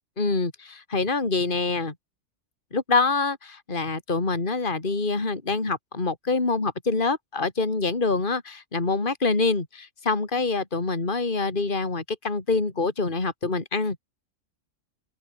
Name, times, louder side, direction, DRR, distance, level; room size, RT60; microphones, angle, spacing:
voice 1, 0.2-1.9 2.7-14.0, left 3 dB, 35° left, 2.9 m, -25 dB
open air
omnidirectional pair, 1.6 m